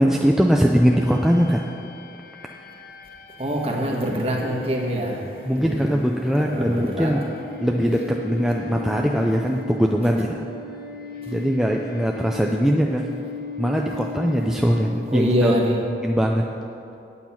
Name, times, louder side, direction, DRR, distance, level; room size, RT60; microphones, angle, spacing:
voice 1, 0.0-1.6 5.4-7.2 7.6-10.4 11.3-13.1 13.6-15.5 16.0-16.5, equal, 5° right, 0 dB, 0.3 m, -21 dB
sound 1, 0.9-15.3, left 2 dB, 55° left, 0.5 m, -38 dB
voice 2, 3.4-5.9 6.3-7.2 15.1-15.9, equal, 35° right, 0 dB, 1.3 m, -24 dB
8.8 x 8.4 x 5.7 m, 2.8 s
head